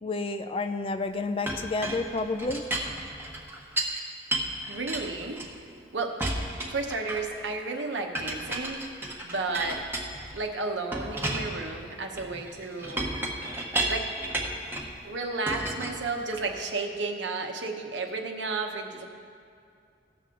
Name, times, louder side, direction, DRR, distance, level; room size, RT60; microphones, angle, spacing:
voice 1, 0.0-2.6, left 3 dB, 30° left, 8 dB, 0.4 m, -30 dB
Chink clink, 1.5-4.0 4.3-5.8 6.2-7.4 8.1-10.4 10.9-14.9 15.5-16.6, right 1 dB, 10° right, 1.0 m, -33 dB
voice 2, 4.7-5.4 5.9-6.2 6.6-8.8 9.2-9.8 10.3-13.1 13.9-14.1 15.0-19.1, right 3 dB, 70° right, 3 dB, 1.0 m, -32 dB
16.5 x 6.9 x 3.8 m, 2.3 s
head